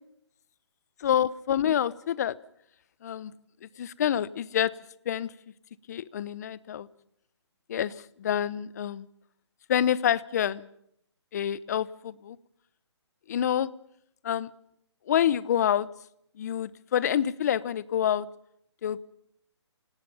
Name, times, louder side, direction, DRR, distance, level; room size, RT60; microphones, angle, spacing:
voice 1, 1.0-2.4 3.0-3.3 3.6-4.7 5.1-5.3 5.9-6.9 7.7-9.1 9.7-10.7 11.3-12.4 13.3-13.7 14.2-14.5 15.1-15.9 16.4-18.3 18.8-19.0, left 10 dB, 35° left, 20 dB, 0.9 m, -27 dB
29.0 x 18.0 x 5.5 m, 0.72 s
hypercardioid pair, 160°, 15 cm